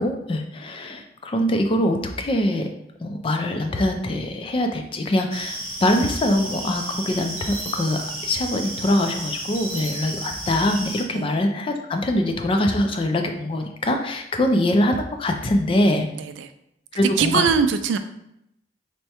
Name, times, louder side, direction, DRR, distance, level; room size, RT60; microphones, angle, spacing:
voice 1, 0.0-2.7 3.0-16.1 16.9-17.5, left 1 dB, 30° left, 5 dB, 0.3 m, -23 dB
sound 1, 5.3-11.0, right 1 dB, 30° right, 0.9 m, -33 dB
voice 2, 16.1-16.5 17.2-18.0, right 6 dB, 80° right, 9 dB, 0.3 m, -22 dB
4.5 x 2.1 x 2.8 m, 0.78 s
head